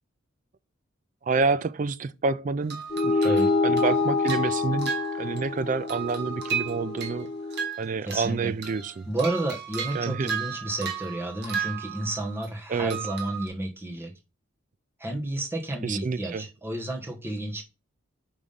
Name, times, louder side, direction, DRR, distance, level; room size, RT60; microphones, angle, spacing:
voice 1, 1.3-3.3 3.6-4.9 5.2-7.3 7.8-9.1 9.9-10.3 12.7-13.0 15.8-16.4, right 4 dB, 40° right, 0.4 m, -28 dB
sound 1, 2.7-5.6 5.9-8.3 8.6-12.5 12.9-13.5, right 8 dB, 55° right, 1.4 m, -35 dB
sound 2, 2.9-7.7, left 3 dB, 30° left, 0.4 m, -27 dB
voice 2, 8.0-8.5 9.1-14.1 15.0-17.6, right 1 dB, 10° right, 1.2 m, -31 dB
5.4 x 3.6 x 5.2 m
head